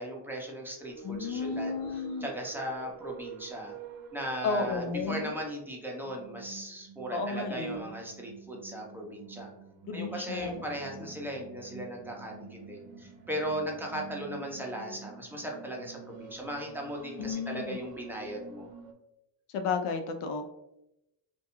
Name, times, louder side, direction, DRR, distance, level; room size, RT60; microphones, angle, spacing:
voice 1, 0.0-1.8 2.2-3.7 4.1-9.5 9.9-18.7, equal, 5° right, -1 dB, 0.5 m, -37 dB
sound 1, 0.8-18.9, right 6 dB, 75° right, 0.6 m, -48 dB
voice 2, 1.0-2.3 4.4-5.4 7.1-7.8 9.8-10.7 17.2-17.8 19.5-20.5, left 4 dB, 85° left, 6 dB, 0.6 m, -33 dB
2.3 x 2.2 x 2.9 m, 0.86 s
cardioid pair, 85°, 49 cm